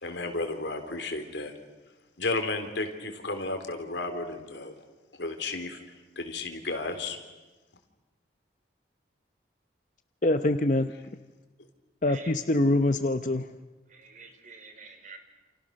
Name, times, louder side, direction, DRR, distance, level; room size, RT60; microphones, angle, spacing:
voice 1, 0.0-1.5 2.2-4.7 5.2-5.8 6.2-7.2, left 2 dB, 70° left, 6 dB, 3.6 m, -33 dB
voice 2, 10.2-10.9 12.0-13.5, left 1 dB, 40° left, 9 dB, 0.8 m, -24 dB
voice 3, 13.9-15.2, right 4 dB, 45° right, 6 dB, 3.9 m, -47 dB
29.0 x 29.0 x 6.5 m, 1.2 s
head